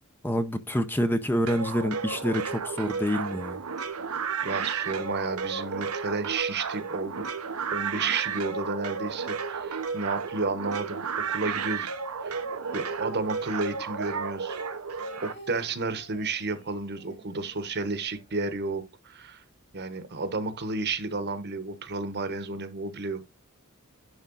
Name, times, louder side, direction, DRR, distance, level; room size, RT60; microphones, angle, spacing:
voice 1, 0.2-3.6, equal, 10° left, 0.6 m, -27 dB
sound 1, 1.5-15.3, right 5 dB, 90° right, 0.9 m, -33 dB
voice 2, 4.4-7.2 7.7-11.9 12.2-12.4 12.7-14.6 15.2-19.4 19.7-23.2, right 3 dB, 50° right, 1.1 m, -32 dB
sound 2, 12.2-14.3 14.6-18.6 18.9-19.0 19.2-19.7, equal, 55° left, 4.1 m, -52 dB
10.5 x 3.6 x 3.9 m
head